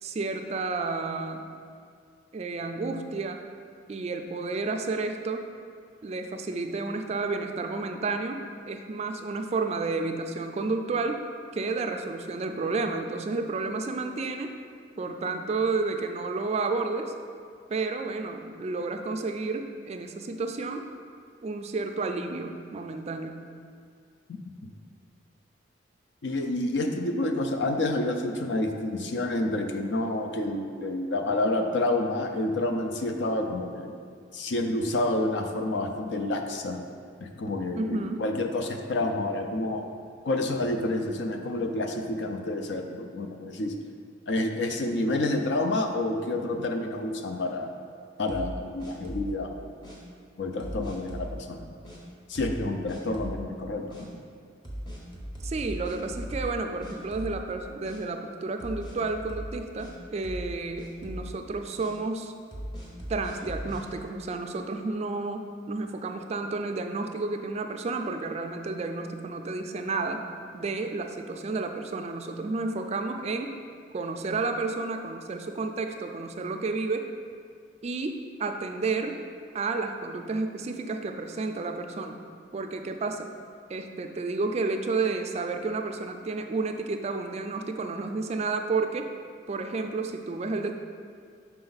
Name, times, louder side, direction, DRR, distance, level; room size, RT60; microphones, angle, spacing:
voice 1, 0.0-1.5 2.3-3.4 3.9-5.5 6.0-11.2 11.5-14.5 15.0-17.1 17.7-20.9 21.4-23.5 37.8-38.3 55.4-62.3 63.1-70.2 70.5-73.5 73.9-77.1 77.8-79.2 79.5-82.2 82.5-83.3 83.7-89.1 89.5-90.7, right 3 dB, 35° right, 5 dB, 0.3 m, -31 dB
voice 2, 24.3-24.7 26.2-33.9 34.3-36.8 37.2-39.8 40.3-43.7 44.3-47.7 48.2-49.7 50.4-51.7 52.3-54.2, left 2 dB, 65° left, 4 dB, 0.5 m, -29 dB
sound 1, 48.3-49.4 49.8-50.0 50.6-51.3 51.8-52.0 52.3-52.6 52.9-53.4 53.9-54.0 54.6-56.6 56.8-57.5 57.8-58.0 58.6-59.9 60.2-60.5 60.8-61.3 61.8-61.9 62.5-63.8, equal, 25° left, 0.9 m, -38 dB
5.8 x 4.3 x 4.0 m, 2.2 s
head